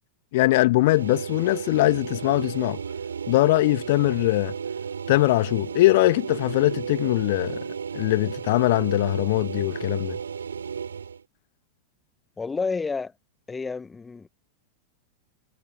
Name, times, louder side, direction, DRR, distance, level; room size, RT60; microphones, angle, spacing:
voice 1, 0.3-2.8 3.3-4.5 5.1-7.6 7.9-10.2, left 19 dB, 50° left, 1.5 m, -21 dB
sound 1, 0.8-11.2, right 6 dB, 70° right, 7.7 m, -33 dB
voice 2, 12.4-13.1 13.5-14.3, left 4 dB, 15° left, 1.8 m, -30 dB
figure-of-eight pair, 90°, 0 cm